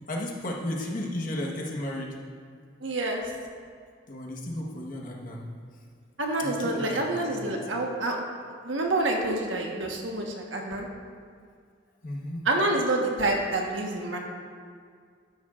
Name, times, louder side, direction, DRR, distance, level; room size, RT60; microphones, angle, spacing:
voice 1, 0.1-2.1 4.1-5.4 6.4-7.6 12.0-12.5, left 1 dB, 45° left, -2 dB, 1.4 m, -34 dB
voice 2, 2.8-3.2 6.2-8.2 8.6-10.9 12.4-14.2, right 2 dB, 85° right, 1 dB, 1.4 m, -27 dB
12.5 x 10.0 x 2.5 m, 2.1 s
head